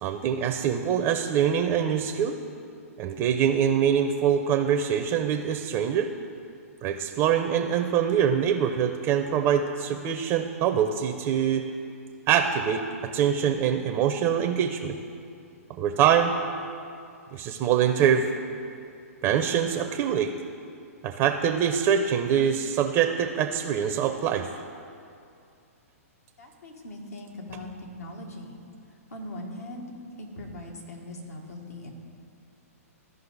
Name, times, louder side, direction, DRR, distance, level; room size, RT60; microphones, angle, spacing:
voice 1, 0.0-2.4 3.0-6.1 6.8-11.6 12.3-15.0 15.8-16.3 17.3-18.3 19.2-20.3 21.0-24.5, right 8 dB, 30° right, 6 dB, 0.5 m, -24 dB
voice 2, 26.4-28.6 29.1-29.9 30.2-31.9, left 1 dB, 80° left, 1 dB, 1.6 m, -40 dB
13.5 x 5.3 x 4.0 m, 2.4 s
hypercardioid pair, 125°, 8 cm